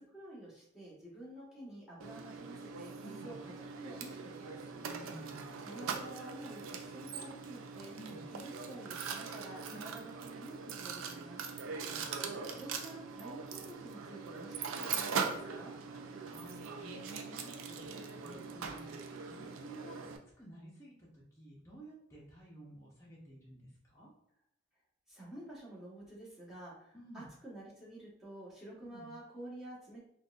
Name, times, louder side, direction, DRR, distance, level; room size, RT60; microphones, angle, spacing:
voice 1, 0.0-4.6 5.6-7.9 8.3-11.4 12.4-15.7 25.1-30.0, right 1 dB, 5° right, -8 dB, 1.2 m, -50 dB
Mechanisms, 2.0-20.2, right 5 dB, 85° right, 0.4 m, -41 dB
voice 2, 3.0-3.4 4.9-5.6 7.9-8.2 9.7-10.0 11.8-12.6 16.2-24.1 26.9-27.3 28.8-29.1, right 1 dB, 15° left, -6 dB, 0.7 m, -53 dB
3.9 x 2.3 x 2.5 m, 0.71 s
head